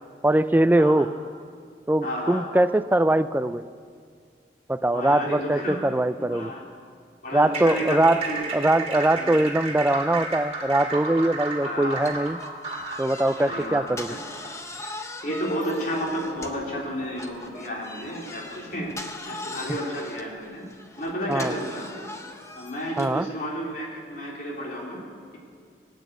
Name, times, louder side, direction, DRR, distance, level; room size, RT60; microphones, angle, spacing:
voice 1, 0.2-1.1 1.9-3.6 4.7-6.5 7.3-8.2 8.5-12.4 13.0-14.1 21.3-21.5 23.0-23.3, right 1 dB, 10° right, 12 dB, 0.3 m, -22 dB
voice 2, 2.0-2.5 4.9-5.8 6.2-6.6 7.2-8.6 9.2-9.3 11.6-12.1 13.5-14.2 14.8-15.0 15.2-20.7 21.0-21.9 22.6-25.0, equal, 45° left, -3 dB, 3.4 m, -32 dB
sound 1, 7.4-13.9, right 3 dB, 35° right, 2.3 m, -33 dB
sound 2, 12.0-16.7 17.2-23.2, left 2 dB, 15° left, 0.8 m, -40 dB
18.5 x 9.2 x 8.1 m, 2.1 s
head